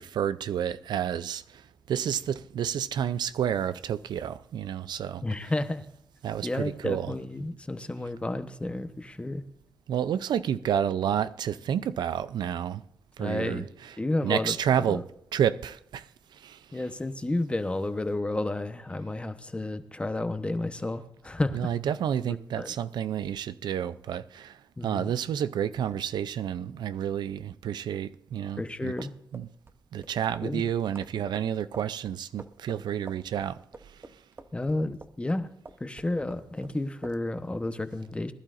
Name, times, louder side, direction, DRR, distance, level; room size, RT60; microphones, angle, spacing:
voice 1, 0.0-1.6 1.9-5.5 6.2-7.2 9.9-12.8 13.2-14.0 14.2-15.0 15.3-16.6 21.5-28.9 29.3-29.5 29.9-33.6 33.9-34.0, right 9 dB, 85° right, 0.5 m, -30 dB
voice 2, 5.2-5.8 6.4-9.4 13.2-13.7 14.0-14.5 14.9-15.0 16.7-21.7 22.6-22.7 24.8-25.1 28.6-29.1 30.4-30.7 34.5-35.5 35.8-38.3, left 2 dB, 15° left, 1.0 m, -31 dB
sound 1, 29.0-35.4 35.7-36.8 37.0-37.2, right 3 dB, 30° right, 0.8 m, -47 dB
20.0 x 12.0 x 2.5 m
cardioid pair, 105°, 7 cm